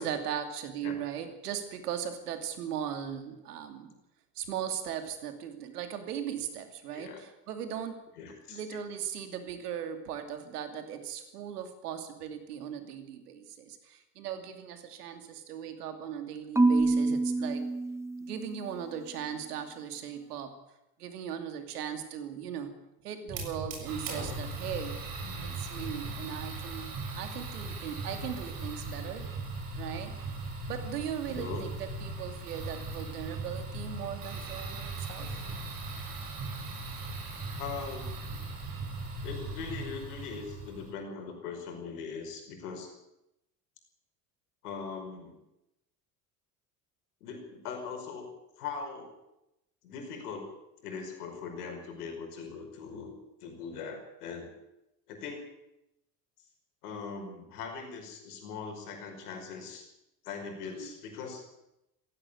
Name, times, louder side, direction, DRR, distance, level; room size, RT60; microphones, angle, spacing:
voice 1, 0.0-4.0 4.3-8.0 8.5-17.7 18.2-20.5 21.0-22.7 23.0-25.0 25.4-26.9 27.2-29.2 29.7-35.3 60.6-60.9, right 8 dB, 85° right, 7 dB, 2.7 m, -38 dB
voice 2, 6.9-7.2 8.2-8.6 25.2-25.7 31.3-31.7 37.6-38.1 39.2-42.9 44.6-45.4 47.2-48.3 48.6-49.2 49.8-50.5 50.8-54.5 55.1-55.4 56.8-59.9 60.2-61.5, left 5 dB, 80° left, 4 dB, 5.3 m, -41 dB
Marimba xylophone / Wood, 16.6-18.8, right 2 dB, 5° right, 0.9 m, -27 dB
Fire, 23.3-40.9, right 3 dB, 45° right, 7.6 m, -38 dB
16.5 x 16.0 x 9.8 m, 0.88 s
hypercardioid pair, 70°, 45 cm